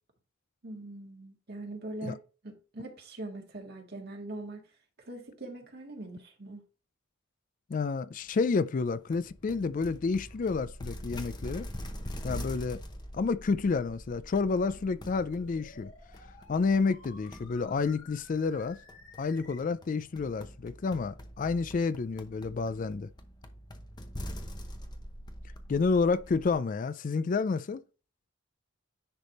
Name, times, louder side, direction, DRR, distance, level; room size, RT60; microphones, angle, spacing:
voice 1, 0.6-4.7 5.1-6.6, right 2 dB, 50° right, 1.7 m, -42 dB
voice 2, 7.7-11.7 12.2-12.8 13.1-15.9 16.5-18.8 19.2-23.1 25.7-27.8, left 4 dB, 40° left, 0.3 m, -29 dB
sound 1, 9.1-26.5, equal, 20° left, 0.8 m, -44 dB
sound 2, 14.6-19.6, left 3 dB, 85° left, 4.1 m, -54 dB
10.0 x 3.5 x 4.2 m
head